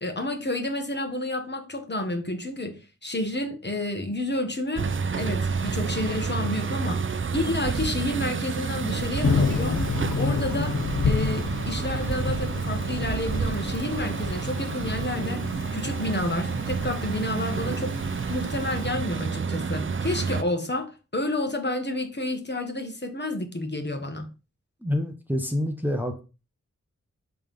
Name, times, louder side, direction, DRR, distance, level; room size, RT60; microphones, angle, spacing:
voice 1, 0.0-4.9 5.2-9.8 10.2-10.8 11.0-15.4 15.7-18.0 18.3-24.3, left 1 dB, 35° left, 1.3 m, -30 dB
sound 1, 4.8-20.4, right 5 dB, 40° right, 0.5 m, -29 dB
Thunder / Rain, 9.2-18.9, left 5 dB, 70° left, 0.7 m, -30 dB
voice 2, 24.8-26.2, left 1 dB, 5° right, 0.9 m, -27 dB
5.6 x 3.4 x 5.3 m
wide cardioid pair, 65°, 30 cm